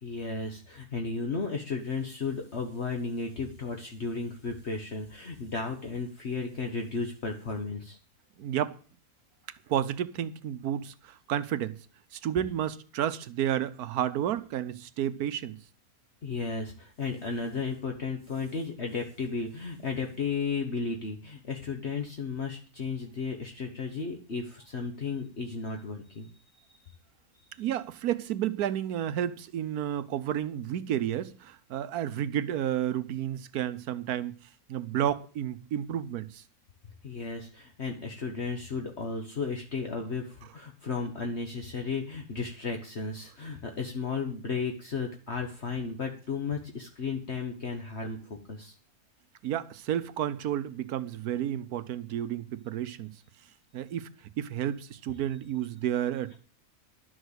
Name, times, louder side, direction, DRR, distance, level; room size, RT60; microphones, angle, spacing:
voice 1, 0.0-8.0 16.2-26.3 26.6-26.9 27.6-27.7 37.0-48.7, left 4 dB, 50° left, 1.5 m, -34 dB
voice 2, 8.4-8.8 9.7-11.8 12.1-15.6 27.6-34.3 34.7-36.4 49.4-53.1 53.7-54.1 54.4-56.4, right 10 dB, 85° right, 1.3 m, -31 dB
12.0 x 6.4 x 8.1 m
omnidirectional pair, 1.6 m